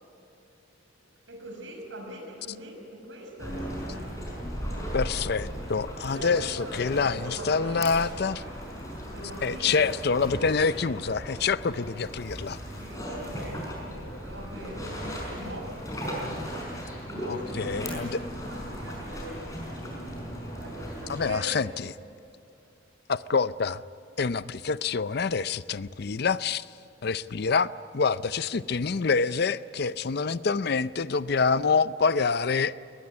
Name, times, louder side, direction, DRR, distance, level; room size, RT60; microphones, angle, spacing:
voice 1, 1.3-4.0 6.1-8.0 9.1-9.9 11.8-11.9 12.8-13.6 13.9-15.8 17.1-18.0 18.3-19.4 20.6-21.7 27.2-27.5 29.2-29.4 30.2-30.3, right 1 dB, 70° right, 3 dB, 6.1 m, -42 dB
sound 1, 3.4-21.3, equal, 15° left, 5.5 m, -37 dB
voice 2, 4.9-8.4 9.4-12.6 17.3-18.2 21.1-21.9 23.1-23.8 24.2-26.6 27.0-27.7 27.9-32.8, left 5 dB, 50° left, 16 dB, 0.5 m, -26 dB
22.0 x 20.0 x 9.8 m, 2.7 s
head